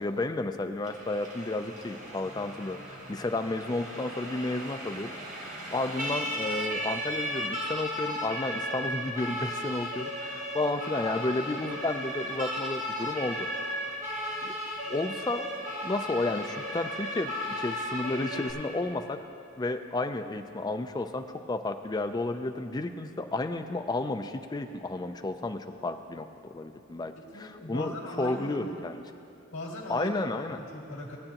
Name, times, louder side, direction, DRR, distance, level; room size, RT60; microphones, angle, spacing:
voice 1, 0.0-5.2 5.4-13.5 14.4-14.6 14.9-15.5 15.8-19.2 19.6-29.0 29.9-30.6, left 2 dB, 20° left, 7 dB, 0.4 m, -32 dB
Siren, 0.8-18.5, equal, 40° right, 1.3 m, -35 dB
voice 2, 27.2-28.7 29.5-30.1 30.7-31.2, left 1 dB, 85° left, -2 dB, 2.0 m, -39 dB
18.0 x 8.8 x 2.9 m, 2.7 s
head